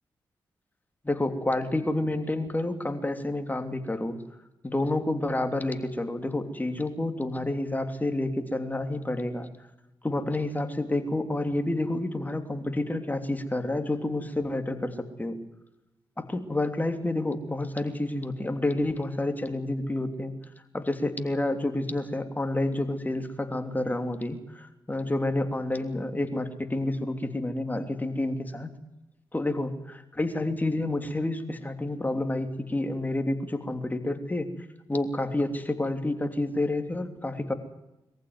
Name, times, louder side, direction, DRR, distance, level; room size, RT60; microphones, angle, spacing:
voice 1, 1.0-4.2 4.6-9.5 10.0-15.4 16.3-20.3 20.7-28.7 29.3-29.7 30.1-34.5 34.9-37.5, left 2 dB, 20° left, 6 dB, 3.1 m, -29 dB
22.5 x 15.0 x 9.6 m, 0.97 s
cardioid pair, 55°, 9 cm